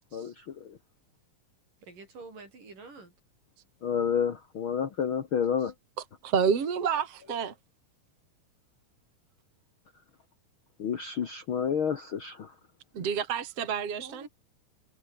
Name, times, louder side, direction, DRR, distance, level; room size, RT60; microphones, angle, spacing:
voice 1, 1.8-3.1 14.0-14.3, right 3 dB, 65° right, 9.4 m, -47 dB
voice 2, 3.8-5.7 10.8-12.5, left 7 dB, 50° left, 1.6 m, -29 dB
voice 3, 6.2-7.5 12.9-14.3, right 7 dB, 45° right, 3.8 m, -29 dB
omnidirectional pair, 4.1 m